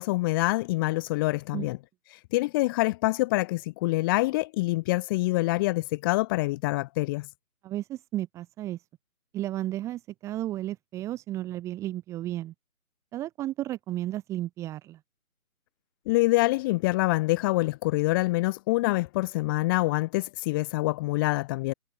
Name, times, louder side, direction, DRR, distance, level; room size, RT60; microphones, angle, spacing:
voice 1, 0.0-1.8 2.3-7.3 16.0-21.7, left 20 dB, 15° left, 5.1 m, -26 dB
voice 2, 7.6-8.8 9.3-12.5 13.1-15.0, right 14 dB, 5° right, 2.7 m, -33 dB
hypercardioid pair, 170°, 44 cm